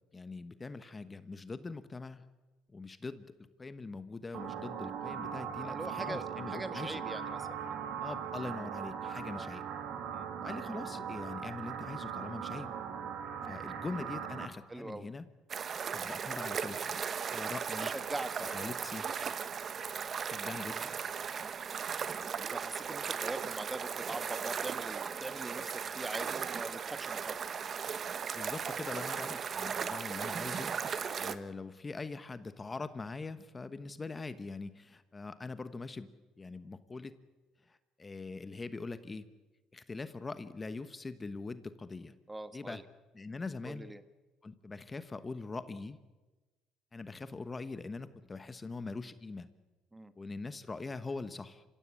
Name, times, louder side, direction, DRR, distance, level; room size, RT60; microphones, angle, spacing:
voice 1, 0.1-2.2 2.7-3.3 3.6-7.0 8.0-9.6 10.4-12.7 13.4-15.2 15.9-17.0 17.3-17.9 18.4-19.1 20.3-20.9 28.3-30.7 31.2-37.1 37.7-39.3 39.7-42.1 42.5-42.8 43.1-43.9 44.4-46.0 46.9-49.5 50.2-51.6, left 3 dB, 25° left, 12 dB, 1.2 m, -42 dB
sound 1, 4.3-14.5, right 8 dB, 70° right, 2.4 m, -40 dB
voice 2, 5.6-8.0 9.3-9.5 10.1-10.3 13.4-13.6 14.7-15.1 17.8-18.6 21.4-21.5 22.2-27.4 42.3-42.8 43.6-44.0 49.9-50.1, right 2 dB, 15° right, 12 dB, 1.5 m, -43 dB
sound 2, 15.5-31.3, right 6 dB, 45° right, 1.2 m, -37 dB
26.5 x 16.0 x 8.5 m, 1.2 s
supercardioid pair, 80°, 0 cm